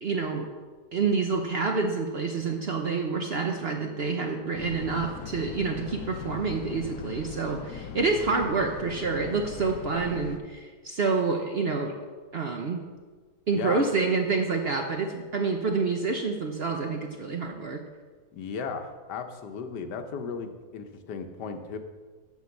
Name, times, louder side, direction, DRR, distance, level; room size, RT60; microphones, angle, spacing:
voice 1, 0.0-0.5 0.9-11.9 12.3-12.8 13.5-17.8, right 4 dB, 55° right, 3 dB, 0.7 m, -28 dB
sound 1, 4.5-10.4, left 7 dB, 70° left, 1.0 m, -40 dB
voice 2, 18.3-21.8, left 5 dB, 85° left, 7 dB, 1.4 m, -35 dB
10.5 x 4.6 x 6.9 m, 1.4 s
omnidirectional pair, 1.8 m